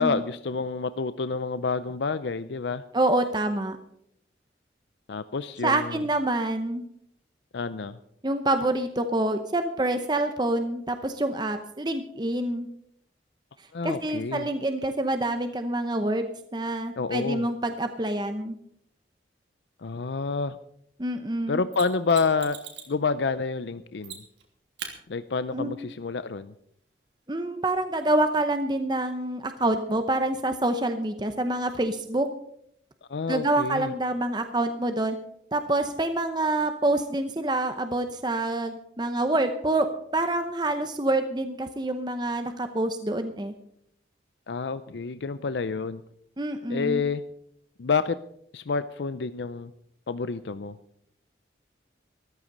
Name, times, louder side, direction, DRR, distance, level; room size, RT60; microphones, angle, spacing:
voice 1, 0.0-2.8 5.1-6.0 7.5-8.0 13.7-14.5 17.0-17.4 19.8-20.6 21.5-22.6 22.9-24.2 25.1-26.5 33.1-33.9 44.5-46.0 46.7-47.2 47.8-48.2 48.5-49.7 50.1-50.8, left 4 dB, 75° left, 13 dB, 0.5 m, -28 dB
voice 2, 2.9-3.8 5.6-6.8 8.2-12.7 13.8-16.2 16.5-18.5 21.0-21.6 25.5-25.8 27.3-32.3 33.3-35.2 35.5-39.9 40.1-43.5 46.4-47.0, right 2 dB, 25° right, 7 dB, 0.8 m, -26 dB
Mechanisms, 21.7-23.0 24.0-24.4 24.8-24.9 27.7-27.8, right 7 dB, 80° right, 3.0 m, -39 dB
14.0 x 13.0 x 5.3 m, 0.72 s
head